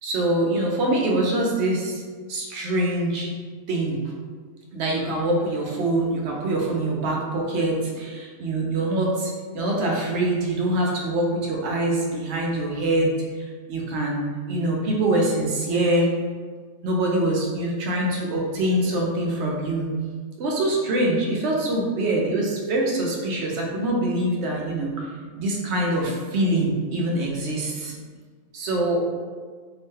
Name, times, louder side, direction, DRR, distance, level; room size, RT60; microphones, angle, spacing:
voice 1, 0.0-2.0 2.3-3.3 3.7-4.0 4.7-16.1 16.8-19.9 20.4-25.0 25.4-27.9 28.5-29.1, right 1 dB, 65° right, -2 dB, 0.7 m, -24 dB
2.9 x 2.1 x 3.1 m, 1.6 s
omnidirectional pair, 1.5 m